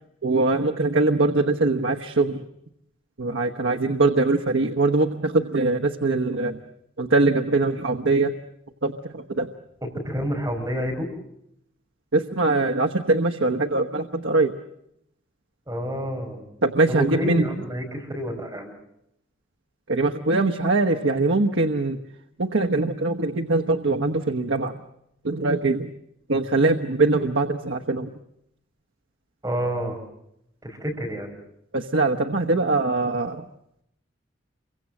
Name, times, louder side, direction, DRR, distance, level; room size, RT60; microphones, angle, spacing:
voice 1, 0.2-2.4 3.2-6.6 7.0-8.3 8.8-9.5 12.1-14.5 16.6-17.4 19.9-22.0 22.4-24.8 25.2-25.9 26.3-28.1 31.7-33.4, right 3 dB, 85° right, 4 dB, 1.2 m, -22 dB
voice 2, 9.8-11.1 15.7-16.4 16.9-18.7 29.4-30.0 30.6-31.3, equal, 20° right, 1 dB, 5.4 m, -29 dB
28.5 x 24.0 x 7.7 m, 0.79 s
head